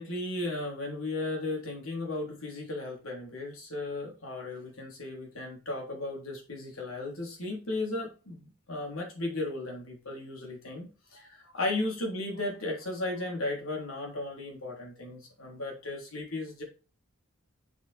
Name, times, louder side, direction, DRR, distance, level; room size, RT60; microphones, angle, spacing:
voice 1, 0.0-16.6, left 2 dB, 90° left, 0 dB, 3.3 m, -35 dB
7.0 x 6.0 x 3.4 m, 0.34 s
head